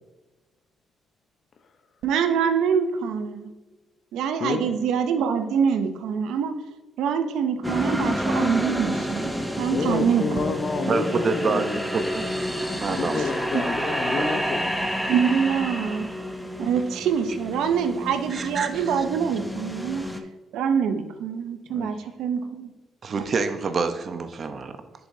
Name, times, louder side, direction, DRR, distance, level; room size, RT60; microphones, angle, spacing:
voice 1, 2.0-3.5 4.1-6.6 7.0-10.4 15.1-16.1 16.6-20.1 20.5-22.7, right 7 dB, 85° right, 0.6 m, -25 dB
sound 1, 7.6-20.2, equal, ahead, 0.7 m, -29 dB
voice 2, 9.7-11.8 12.9-14.7 21.7-21.9, left 4 dB, 55° left, 0.8 m, -29 dB
voice 3, 10.9-12.3 12.8-13.5 14.2-14.3 18.3-18.8 23.0-24.7, right 4 dB, 45° right, 0.7 m, -27 dB
7.4 x 6.9 x 2.7 m
cardioid pair, 90°, 0 cm